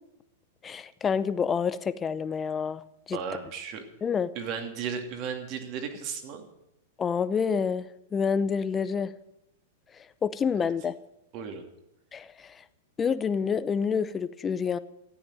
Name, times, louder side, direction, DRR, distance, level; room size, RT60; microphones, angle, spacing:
voice 1, 0.6-2.8 3.1-3.2 4.0-4.3 7.0-9.1 10.2-10.9 12.1-12.6 13.0-14.8, left 6 dB, 20° left, 15 dB, 0.7 m, -28 dB
voice 2, 3.1-3.8 4.3-6.4 10.5-10.6 11.3-11.6, right 6 dB, 40° right, 5 dB, 2.7 m, -35 dB
14.0 x 9.2 x 9.0 m, 0.85 s
hypercardioid pair, 135°, 0 cm